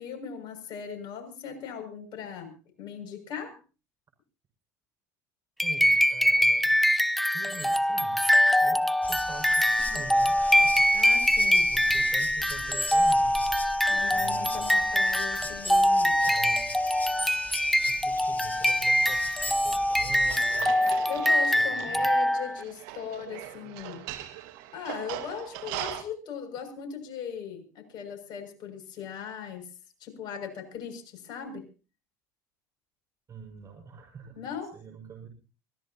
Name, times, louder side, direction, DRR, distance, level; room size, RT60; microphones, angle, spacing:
voice 1, 0.0-2.5 2.8-3.6 10.9-11.7 13.9-16.2 21.0-24.0 24.7-29.7 30.0-31.6 34.3-34.7, left 7 dB, 55° left, 5 dB, 6.8 m, -39 dB
sound 1, 5.6-22.6, equal, ahead, 1.0 m, -24 dB
voice 2, 5.6-6.7 7.3-8.2 8.6-11.1 11.6-13.4 14.1-15.0 16.2-16.7 17.8-20.7 21.5-22.1 33.3-34.4 34.7-35.3, right 5 dB, 35° right, 2 dB, 6.1 m, -45 dB
sound 2, 9.0-20.6, left 3 dB, 20° left, 2.1 m, -42 dB
sound 3, 20.3-26.0, right 13 dB, 70° right, 1.8 m, -40 dB
23.5 x 16.5 x 2.9 m, 0.34 s
supercardioid pair, 90°, 9 cm